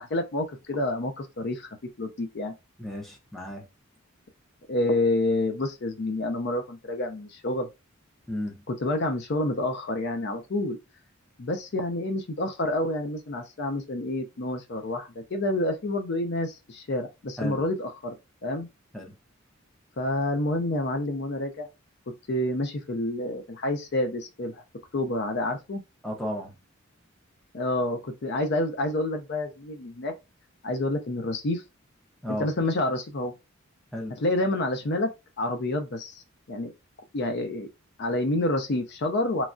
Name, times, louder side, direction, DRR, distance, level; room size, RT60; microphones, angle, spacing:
voice 1, 0.0-1.7 2.0-2.5 4.7-7.7 8.7-10.8 11.4-18.1 18.4-18.7 20.0-21.7 22.3-24.6 24.9-25.8 27.5-30.1 30.6-31.6 32.3-33.3 34.2-35.1 35.4-36.2 36.5-36.7 37.1-37.7 38.0-39.5, left 1 dB, 55° left, 0.5 m, -28 dB
voice 2, 2.8-3.6 8.3-8.5 17.4-17.6 18.9-19.1 26.0-26.5 32.2-32.5 33.9-34.1, left 1 dB, ahead, 0.6 m, -33 dB
3.1 x 2.3 x 2.5 m
head